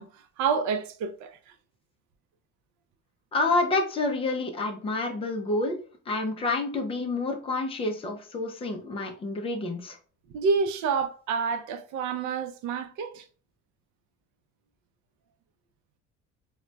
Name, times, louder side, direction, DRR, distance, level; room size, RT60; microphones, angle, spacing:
voice 1, 0.0-1.4 10.3-13.2, right 5 dB, 70° right, 0.5 m, -28 dB
voice 2, 3.3-5.8 6.1-10.0, left 2 dB, 20° left, 0.4 m, -28 dB
2.2 x 2.1 x 3.8 m
cardioid pair, 170°, 30 cm